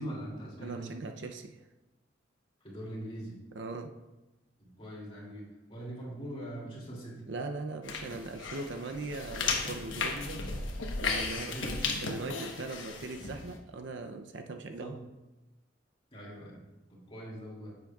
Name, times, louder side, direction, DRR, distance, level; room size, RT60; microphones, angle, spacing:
voice 1, 0.0-0.9 2.6-3.4 4.6-7.2 10.1-10.3 11.4-12.0 14.8-15.0 16.1-16.6 16.9-17.7, right 1 dB, 30° left, -4 dB, 2.6 m, -42 dB
voice 2, 0.6-1.6 3.5-3.9 7.3-10.4 11.0-15.0, right 3 dB, 65° right, 5 dB, 0.6 m, -40 dB
sound 1, 7.8-13.6, left 4 dB, 85° left, 1.1 m, -35 dB
10.0 x 8.0 x 2.4 m, 1.0 s
head